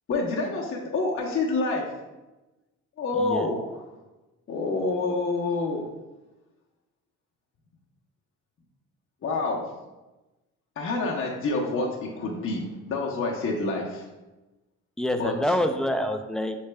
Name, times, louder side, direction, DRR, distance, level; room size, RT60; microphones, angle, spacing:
voice 1, 0.1-1.8 3.0-3.8 4.5-5.9 9.2-9.6 10.8-14.1 15.2-15.3, left 3 dB, 45° left, -2 dB, 0.8 m, -27 dB
voice 2, 3.1-3.5 15.0-16.6, left 1 dB, ahead, 6 dB, 0.3 m, -26 dB
6.3 x 3.3 x 2.2 m, 1.1 s
cardioid pair, 90°, 30 cm